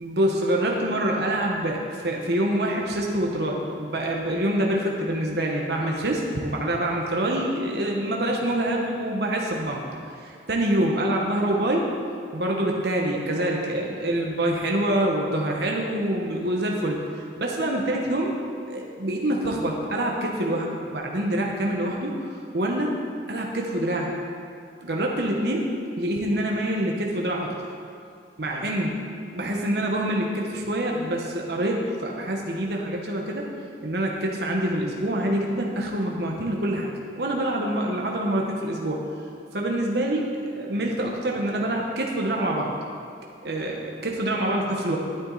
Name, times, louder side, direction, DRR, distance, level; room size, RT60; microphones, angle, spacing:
voice 1, 0.0-9.8 10.1-11.9 12.3-17.0 17.4-18.4 18.7-22.1 22.5-23.0 23.3-24.1 24.8-27.5 28.4-29.0 29.3-33.5 33.8-36.9 37.2-39.1 39.5-42.7 43.4-45.0, right 1 dB, 65° right, -1 dB, 1.2 m, -26 dB
12.5 x 9.3 x 4.1 m, 2.4 s
head